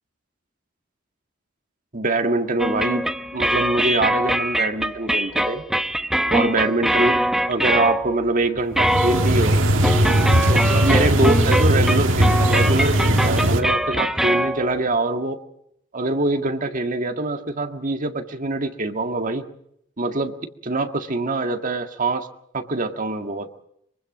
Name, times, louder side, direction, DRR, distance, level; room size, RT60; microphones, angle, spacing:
voice 1, 1.9-3.0 3.3-5.6 6.3-7.2 7.5-9.7 10.5-15.4 15.9-19.5 20.0-20.3 20.6-22.3 22.5-23.5, right 2 dB, 45° right, 6 dB, 1.8 m, -24 dB
sound 1, 2.6-8.3 8.6-14.8, equal, ahead, 0.9 m, -23 dB
sound 2, 8.7-13.6, right 1 dB, 70° right, 2.0 m, -19 dB
24.0 x 24.0 x 5.2 m, 0.75 s
head